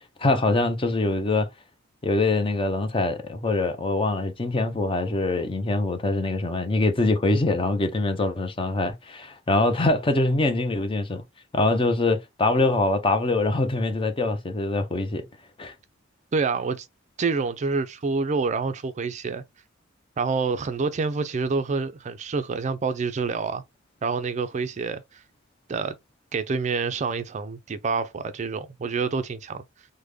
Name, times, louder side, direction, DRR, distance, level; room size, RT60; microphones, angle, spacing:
voice 1, 0.2-1.5 2.0-11.2 11.5-15.3 15.6-15.7, left 2 dB, 25° left, 0.5 m, -24 dB
voice 2, 16.3-16.9 17.2-19.4 20.2-23.6 24.0-25.2 25.7-26.0 26.3-29.6, right 4 dB, 35° right, 0.4 m, -27 dB
3.4 x 2.1 x 3.2 m
head